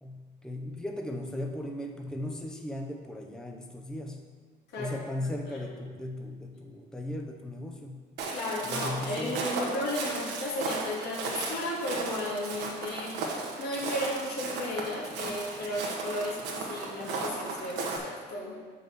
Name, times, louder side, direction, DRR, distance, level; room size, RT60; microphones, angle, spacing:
voice 1, 0.0-4.2 4.8-8.0 8.6-9.4, left 1 dB, 5° left, 2 dB, 0.7 m, -37 dB
Walk footsteps, 8.2-18.0, right 3 dB, 85° right, 1.3 m, -35 dB
voice 2, 8.3-18.6, left 1 dB, 80° left, -3 dB, 2.2 m, -34 dB
6.1 x 5.3 x 6.5 m, 1.5 s
cardioid pair, 110°, 17 cm